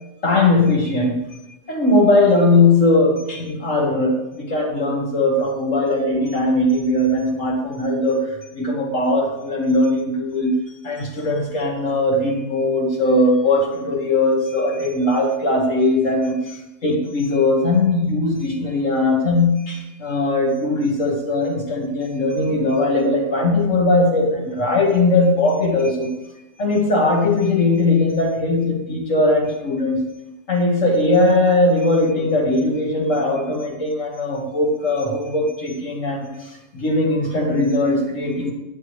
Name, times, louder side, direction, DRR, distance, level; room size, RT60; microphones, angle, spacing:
voice 1, 0.2-1.2 1.7-10.5 10.8-16.6 16.8-26.1 26.6-30.0 30.5-38.5, left 2 dB, 65° left, 0 dB, 2.3 m, -19 dB
12.5 x 9.1 x 3.3 m, 0.94 s
omnidirectional pair, 1.5 m